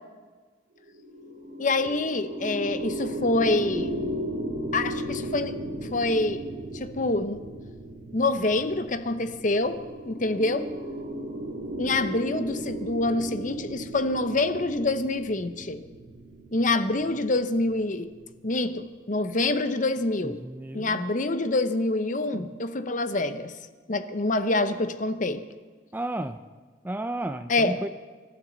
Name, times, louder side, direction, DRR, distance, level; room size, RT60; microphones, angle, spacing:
sound 1, 0.8-18.3, right 1 dB, 55° right, 2.3 m, -36 dB
voice 1, 1.6-4.0 4.7-5.5 5.8-6.4 6.7-7.4 8.1-9.8 10.1-10.6 11.8-15.8 16.5-18.1 18.4-20.4 20.7-23.5 23.9-25.4 27.5-27.8, left 2 dB, 45° left, 10 dB, 0.8 m, -26 dB
voice 2, 20.2-21.0 22.3-22.5 25.9-26.4 26.8-27.9, right 1 dB, 10° right, 9 dB, 0.4 m, -33 dB
25.0 x 12.5 x 4.0 m, 1.4 s
head